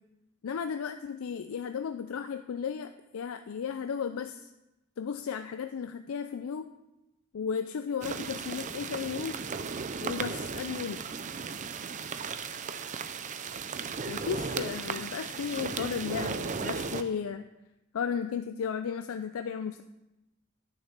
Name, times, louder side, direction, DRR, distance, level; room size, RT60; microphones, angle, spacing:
voice 1, 0.4-4.5 5.0-6.7 7.3-9.4 10.0-11.2 14.1-17.5 17.9-19.8, left 6 dB, 85° left, 9 dB, 0.4 m, -34 dB
sound 1, 8.0-17.0, right 5 dB, 35° right, 0.5 m, -36 dB
9.8 x 6.7 x 5.9 m, 0.98 s
head